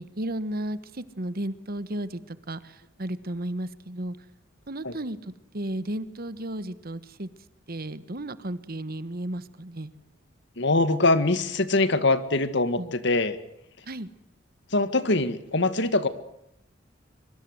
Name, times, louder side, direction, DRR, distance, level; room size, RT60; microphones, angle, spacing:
voice 1, 0.0-4.2 4.7-5.2 5.5-7.3 7.7-9.9 12.8-12.9 13.9-14.1, right 1 dB, 50° right, 14 dB, 1.4 m, -34 dB
voice 2, 10.6-13.4 14.7-16.1, left 2 dB, 65° left, 12 dB, 1.9 m, -23 dB
25.0 x 24.0 x 8.0 m, 0.81 s
head